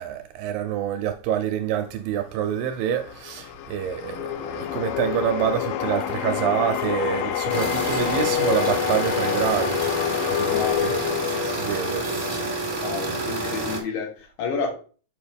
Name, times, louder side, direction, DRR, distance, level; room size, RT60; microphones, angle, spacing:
voice 1, 0.0-10.0 10.4-11.1 11.4-12.1, right 10 dB, 80° right, 2.1 m, -27 dB
sound 1, 2.6-13.0, left 12 dB, 85° left, 1.9 m, -28 dB
sound 2, 7.5-13.8, right 2 dB, 25° right, 0.9 m, -29 dB
voice 2, 10.4-10.9 12.8-14.7, left 5 dB, 70° left, 2.7 m, -30 dB
7.1 x 5.5 x 3.4 m
omnidirectional pair, 4.4 m